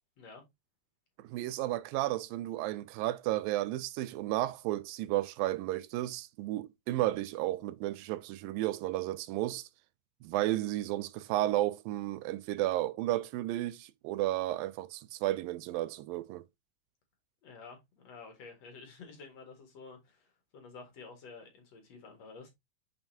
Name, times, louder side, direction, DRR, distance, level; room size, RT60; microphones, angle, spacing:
voice 1, 1.2-9.7 10.2-16.4, right 15 dB, 85° right, 2.4 m, -33 dB
voice 2, 17.4-22.5, left 4 dB, 50° left, 2.9 m, -50 dB
7.1 x 5.6 x 2.8 m
omnidirectional pair, 4.0 m